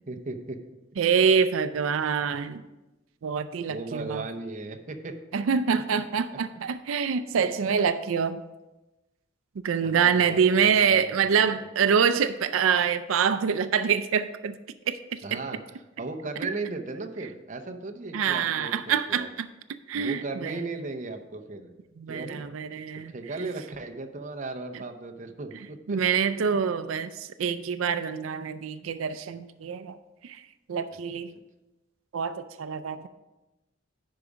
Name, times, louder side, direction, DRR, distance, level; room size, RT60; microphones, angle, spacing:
voice 1, 0.1-0.6 3.7-5.2 9.8-11.7 15.2-15.6 16.0-19.3 19.9-21.7 22.1-22.4 23.1-26.0 30.9-31.0, right 3 dB, 40° right, 5 dB, 0.7 m, -36 dB
voice 2, 1.0-2.6 3.2-4.2 5.3-8.4 9.6-14.6 14.9-15.4 18.1-19.5 19.9-20.6 22.0-23.1 25.9-30.0 30.2-30.4 30.7-31.3 32.1-33.1, right 6 dB, 90° right, 11 dB, 0.4 m, -25 dB
10.5 x 4.8 x 5.0 m, 1.0 s
head